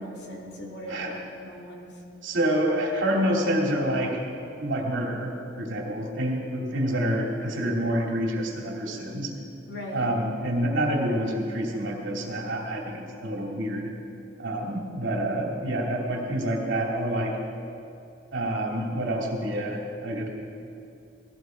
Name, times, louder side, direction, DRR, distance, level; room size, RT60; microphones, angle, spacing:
voice 1, 0.0-1.9 9.7-10.0, equal, 60° left, -2 dB, 2.6 m, -38 dB
voice 2, 2.2-4.2 4.6-9.3 9.9-13.9 14.4-17.4 18.3-20.3, right 1 dB, 80° right, -1 dB, 2.8 m, -27 dB
18.5 x 15.5 x 4.6 m, 2.7 s
head